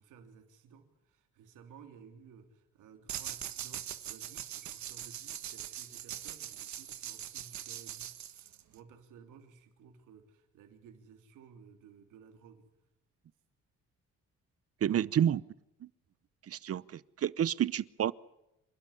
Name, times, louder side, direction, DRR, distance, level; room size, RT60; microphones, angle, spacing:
voice 1, 0.0-12.7, right 6 dB, 85° right, 3.3 m, -56 dB
sound 1, 3.1-8.8, right 11 dB, 65° right, 1.6 m, -42 dB
voice 2, 14.8-15.4 15.8-15.9 16.5-18.1, right 10 dB, 50° right, 0.8 m, -30 dB
27.5 x 12.5 x 9.9 m
cardioid pair, 90°, 30 cm